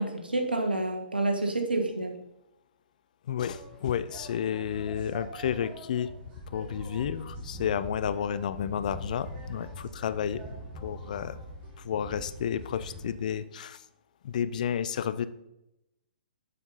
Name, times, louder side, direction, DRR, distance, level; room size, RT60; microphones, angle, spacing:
voice 1, 0.0-2.2, right 2 dB, 85° right, 4 dB, 1.4 m, -28 dB
voice 2, 3.3-6.1 6.5-10.4 10.8-11.4 11.8-13.8 14.2-15.3, left 8 dB, 55° left, 14 dB, 0.5 m, -31 dB
sound 1, 3.4-13.1, equal, 25° right, 2.7 m, -43 dB
7.5 x 5.7 x 4.0 m, 0.88 s
figure-of-eight pair, 120°, 5 cm